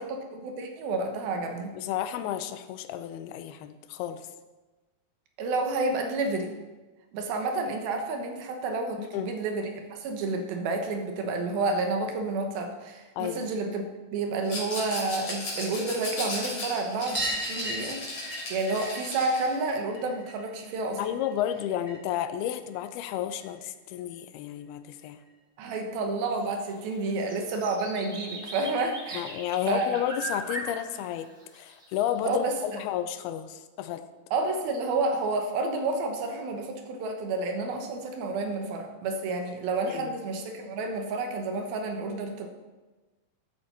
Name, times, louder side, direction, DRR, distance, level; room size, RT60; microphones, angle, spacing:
voice 1, 0.0-1.7 5.4-6.5 7.1-13.8 14.1-18.0 18.5-21.2 25.6-29.3 29.7-30.0 32.2-32.8 34.3-42.5, right 3 dB, 75° right, 4 dB, 2.9 m, -30 dB
voice 2, 1.7-4.3 9.0-9.3 13.2-13.5 21.0-25.2 29.1-31.3 31.5-34.0 39.9-40.2, left 11 dB, 90° left, 10 dB, 2.6 m, -32 dB
Rattle, 14.4-19.5, left 2 dB, 40° left, 4.4 m, -36 dB
sound 1, 17.1-22.2 22.5-23.6 25.0-25.1 25.3-25.4 25.7-25.8 27.1-27.2 27.4-27.5 27.9-28.0 29.2-29.3 30.1-30.2, right 1 dB, 10° right, 2.0 m, -38 dB
sound 2, 26.3-26.5 26.8-32.3, right 2 dB, 35° right, 1.1 m, -39 dB
13.0 x 8.0 x 4.3 m, 1.2 s
omnidirectional pair, 4.5 m